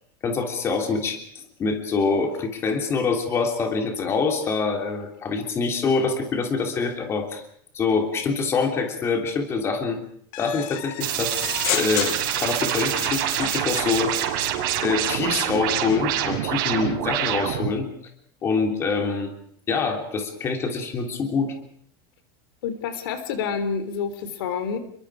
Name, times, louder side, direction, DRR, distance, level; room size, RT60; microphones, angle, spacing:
voice 1, 0.2-1.2 1.6-7.4 7.7-10.0 10.4-14.1 14.8-17.9 18.4-19.3 19.7-21.5, left 4 dB, 20° left, 3 dB, 3.4 m, -25 dB
sound 1, 10.3-14.3, left 16 dB, 50° left, 1.1 m, -32 dB
sound 2, 11.0-17.7, right 11 dB, 60° right, 6.2 m, -26 dB
voice 2, 22.6-24.8, left 6 dB, 80° left, 10 dB, 3.7 m, -28 dB
30.0 x 23.0 x 5.0 m, 0.65 s
supercardioid pair, 170°, 12 cm